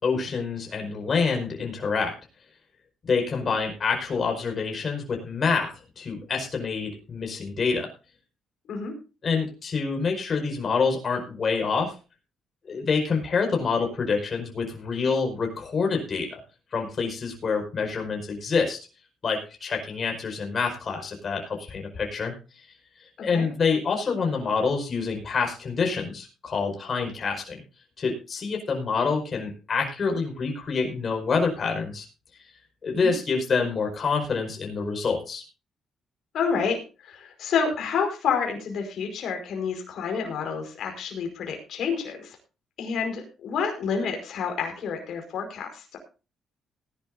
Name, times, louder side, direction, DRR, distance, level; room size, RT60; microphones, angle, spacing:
voice 1, 0.0-2.1 3.1-5.7 6.0-7.9 9.2-11.9 12.7-16.4 16.7-18.8 19.2-22.3 23.2-27.6 28.0-32.1 32.8-35.4, left 5 dB, 45° left, 2 dB, 5.2 m, -27 dB
voice 2, 36.3-42.4 42.8-46.0, left 6 dB, 70° left, 3 dB, 5.0 m, -29 dB
19.5 x 11.5 x 2.7 m, 0.32 s
cardioid pair, 90°, 0 cm